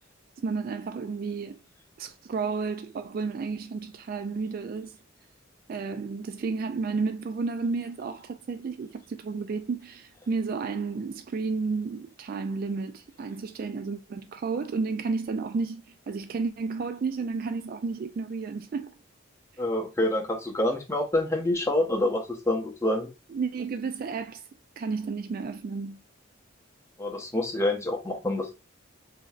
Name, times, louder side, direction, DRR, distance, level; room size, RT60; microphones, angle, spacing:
voice 1, 0.4-1.6 2.0-5.0 5.7-18.9 23.3-24.4 24.8-26.0, right 4 dB, 45° right, 0.3 m, -32 dB
voice 2, 19.6-23.1 27.0-28.5, left 1 dB, 15° left, 0.8 m, -27 dB
5.0 x 2.8 x 2.3 m
head